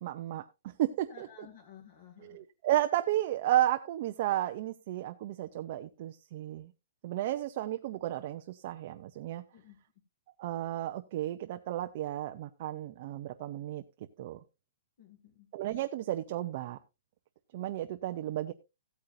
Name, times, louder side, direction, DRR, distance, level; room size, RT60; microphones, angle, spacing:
voice 1, 0.0-1.3 2.2-6.7 7.0-9.4 10.4-13.8 14.2-14.4 15.5-16.8 17.5-18.5, right 13 dB, 35° right, 7 dB, 0.6 m, -33 dB
voice 2, 1.1-2.4 9.5-9.8 15.0-15.5, left 7 dB, 45° left, 1 dB, 2.3 m, -54 dB
16.0 x 8.8 x 2.6 m, 0.26 s
hypercardioid pair, 175°, 0 cm